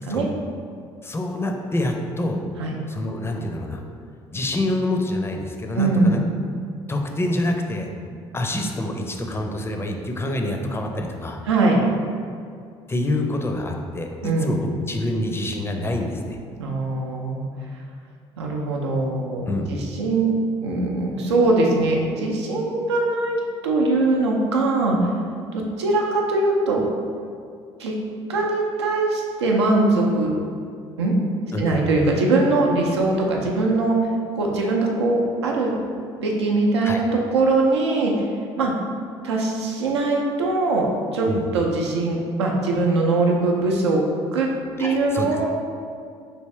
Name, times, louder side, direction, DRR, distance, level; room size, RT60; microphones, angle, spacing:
voice 1, 1.0-2.4 2.9-3.8 4.3-6.2 6.9-7.9 8.3-11.4 12.9-16.4 19.5-19.7 31.5-31.9 36.8-37.0 41.2-41.5 44.8-45.3, left 1 dB, 15° left, 3 dB, 0.5 m, -26 dB
voice 2, 5.7-6.3 11.5-11.8 14.2-14.5 16.6-17.5 18.4-20.4 20.6-23.4 23.6-25.1 25.5-26.8 27.8-28.0 28.3-30.3 31.0-31.2 31.6-34.0 34.3-35.7 36.2-37.0 37.3-38.2 38.6-38.7 39.2-40.9 41.1-41.3 41.5-44.0 44.3-44.5 44.8-45.5, right 2 dB, 90° right, -1 dB, 0.5 m, -21 dB
3.4 x 2.8 x 3.1 m, 2.3 s
hypercardioid pair, 60°, 14 cm